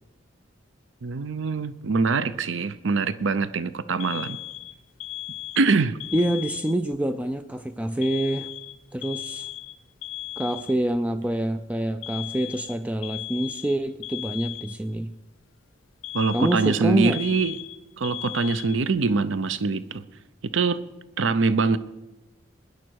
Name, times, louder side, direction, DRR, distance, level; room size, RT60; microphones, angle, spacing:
voice 1, 1.0-4.4 5.6-6.0 16.1-17.6 18.0-20.0 20.4-20.8 21.2-21.8, right 4 dB, 75° right, 14 dB, 0.6 m, -24 dB
Alarm, 4.0-7.0 8.0-11.0 12.0-15.0 16.0-19.0, left 14 dB, 80° left, 0.6 m, -37 dB
voice 2, 6.1-8.5 8.9-9.5 10.4-15.1 16.3-17.2, right 1 dB, 5° right, 9 dB, 0.4 m, -26 dB
20.0 x 10.5 x 4.6 m, 1.0 s
head